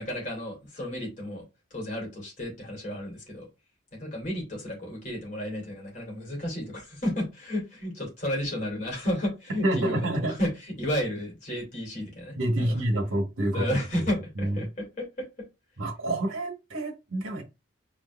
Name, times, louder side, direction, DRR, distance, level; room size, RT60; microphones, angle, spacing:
voice 1, 0.0-1.4 1.7-3.5 3.9-12.8 13.5-15.3, left 1 dB, 35° left, 2.8 m, -32 dB
voice 2, 9.6-10.3 12.4-13.6 14.4-14.6 15.8-17.4, right 1 dB, 80° right, 1.5 m, -27 dB
4.5 x 3.8 x 2.5 m
head